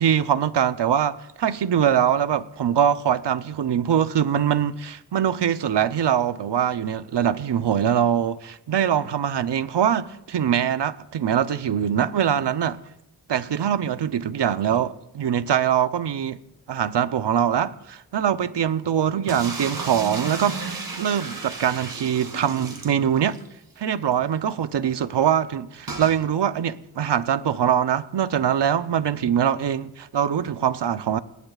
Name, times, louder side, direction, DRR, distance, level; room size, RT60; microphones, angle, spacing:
voice 1, 0.0-12.8 13.3-16.4 16.7-20.6 21.0-23.4 23.8-31.2, right 9 dB, 85° right, 0.7 m, -23 dB
sound 1, 19.3-23.5 23.8-23.9 24.1-24.2 25.9-26.2, right 3 dB, 55° right, 2.5 m, -33 dB
26.5 x 20.0 x 2.4 m
wide cardioid pair, 100°, 41 cm